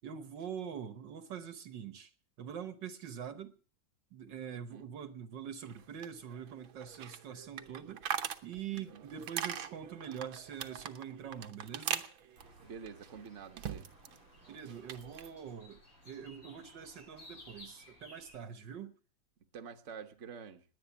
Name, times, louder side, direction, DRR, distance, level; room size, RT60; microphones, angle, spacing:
voice 1, 0.0-2.1 2.4-3.5 4.1-8.0 8.4-12.1 14.5-19.0, right 8 dB, 70° right, 1.7 m, -44 dB
voice 2, 4.5-4.9 8.7-9.0 12.6-13.9 19.5-20.6, right 6 dB, 40° right, 1.5 m, -48 dB
sound 1, 5.7-14.2 14.5-15.3, right 9 dB, 85° right, 1.8 m, -42 dB
sound 2, 12.3-18.3, left 1 dB, 45° left, 7.8 m, -57 dB
20.5 x 8.7 x 7.2 m
omnidirectional pair, 2.1 m